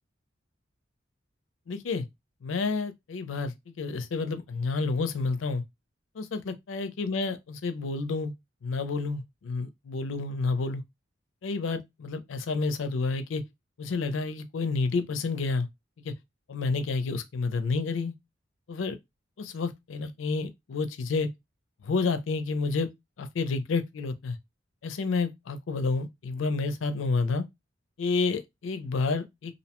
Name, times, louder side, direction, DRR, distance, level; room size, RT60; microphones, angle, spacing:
voice 1, 1.7-2.1 2.4-5.6 6.2-8.3 8.6-10.8 11.4-13.4 13.8-15.7 16.0-16.1 16.5-18.1 18.7-19.0 19.4-21.3 21.8-22.9 23.2-24.4 24.8-27.4 28.0-29.5, left 4 dB, 85° left, 0.4 m, -29 dB
2.6 x 2.1 x 2.8 m
head